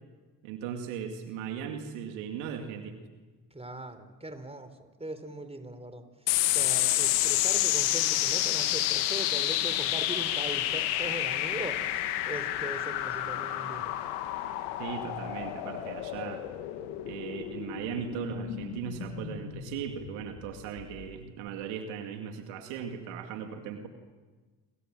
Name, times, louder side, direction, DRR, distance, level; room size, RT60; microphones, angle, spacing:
voice 1, 0.4-3.0 14.8-16.4 17.1-23.9, right 7 dB, 80° right, 5 dB, 2.4 m, -38 dB
voice 2, 3.5-13.9, right 2 dB, 15° right, 10 dB, 4.5 m, -40 dB
sound 1, 6.3-21.1, left 14 dB, 80° left, 2.0 m, -30 dB
30.0 x 24.0 x 7.6 m, 1.3 s
hypercardioid pair, 50°, 47 cm